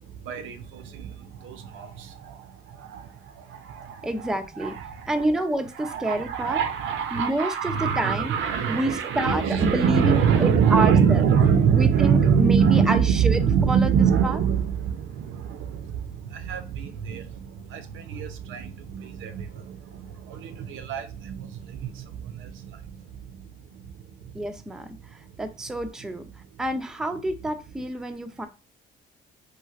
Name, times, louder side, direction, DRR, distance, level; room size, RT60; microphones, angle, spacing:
voice 1, 0.3-2.4 2.8-3.1 3.4-4.1 4.6-5.1 5.8-22.8, right 7 dB, 80° right, 0.5 m, -24 dB
voice 2, 4.0-4.7 5.1-6.6 7.1-8.3 8.7-11.3 11.7-14.4 24.3-26.2 26.6-28.5, right 1 dB, 5° right, 0.4 m, -28 dB
3.2 x 2.4 x 2.3 m
cardioid pair, 90°, 20 cm